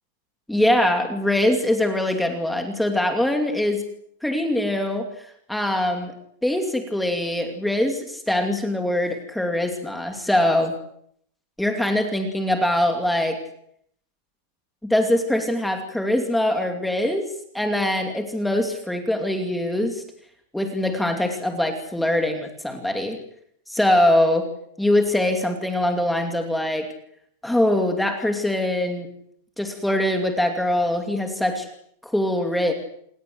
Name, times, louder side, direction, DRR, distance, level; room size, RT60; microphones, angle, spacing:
voice 1, 0.5-3.8 4.2-6.1 6.4-10.7 11.6-13.4 14.8-17.3 17.5-20.0 20.5-23.2 23.7-24.5 24.8-26.9 27.4-29.1 29.6-31.7 32.0-32.7, left 1 dB, ahead, 4 dB, 2.7 m, -23 dB
29.0 x 20.5 x 8.0 m, 0.69 s
supercardioid pair, 175°, 0 cm